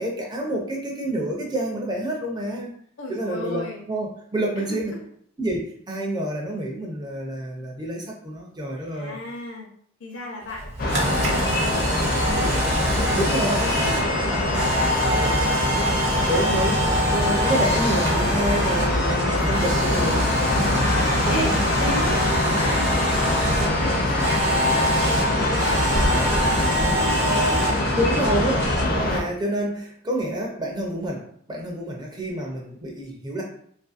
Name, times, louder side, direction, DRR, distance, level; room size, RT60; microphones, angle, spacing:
voice 1, 0.0-2.7 3.1-4.9 5.4-9.2 13.1-13.8 16.3-20.2 20.5-20.8 21.3-21.5 27.9-28.6 28.9-33.4, right 1 dB, 20° right, -1 dB, 0.4 m, -28 dB
voice 2, 3.0-3.9 4.6-5.0 8.8-9.7 10.0-12.6 12.9-15.4 19.8-27.7 28.2-28.6, left 1 dB, 75° left, -1 dB, 0.7 m, -35 dB
Camera, 10.5-18.9 19.2-23.7 24.2-27.7, equal, 55° right, 0.7 m, -27 dB
sound 1, 10.8-29.2, left 1 dB, 45° left, 0.5 m, -23 dB
sound 2, 12.5-28.8, right 1 dB, 85° right, 0.8 m, -36 dB
2.6 x 2.5 x 2.4 m, 0.63 s
head